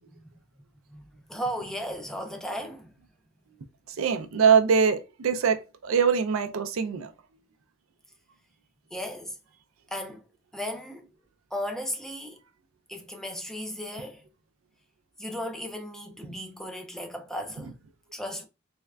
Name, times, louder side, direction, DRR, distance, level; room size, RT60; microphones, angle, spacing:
voice 1, 1.3-2.9 8.9-9.4 9.9-10.2 10.5-11.1 11.5-12.4 12.9-14.2 15.2-17.7 18.1-18.5, equal, ahead, 0.3 m, -35 dB
voice 2, 3.9-7.1, right 6 dB, 70° right, 0.4 m, -23 dB
3.5 x 3.1 x 2.3 m
head